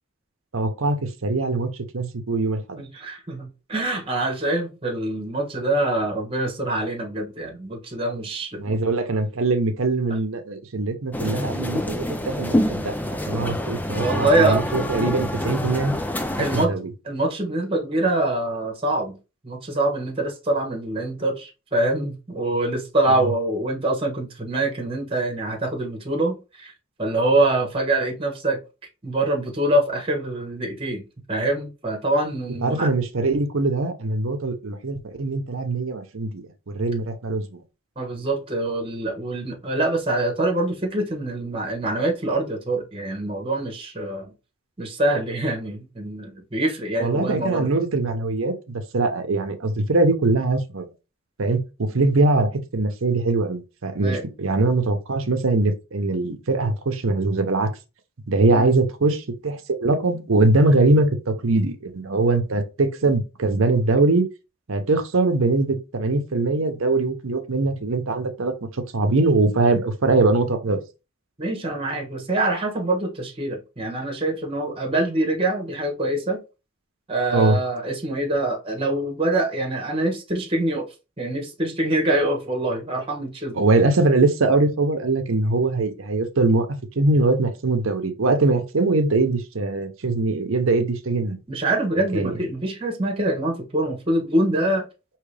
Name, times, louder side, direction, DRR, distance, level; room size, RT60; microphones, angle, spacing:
voice 1, 0.5-2.8 8.6-16.0 16.5-16.8 32.6-37.6 47.0-50.9 51.4-57.7 58.3-64.3 64.7-68.5 68.9-70.8 77.3-77.6 83.5-86.7 87.0-91.4 92.1-92.4, right 2 dB, 75° right, 0.8 m, -22 dB
voice 2, 2.8-8.7 14.0-14.6 16.4-16.8 17.0-19.2 19.4-26.7 27.0-28.6 29.0-32.9 38.0-44.3 44.8-47.7 54.0-54.2 58.5-58.7 71.4-76.4 77.1-80.9 81.2-83.7 91.5-94.8, right 2 dB, 25° right, 1.2 m, -24 dB
sound 1, 11.1-16.7, left 1 dB, 10° left, 0.3 m, -26 dB
4.8 x 3.1 x 3.3 m
head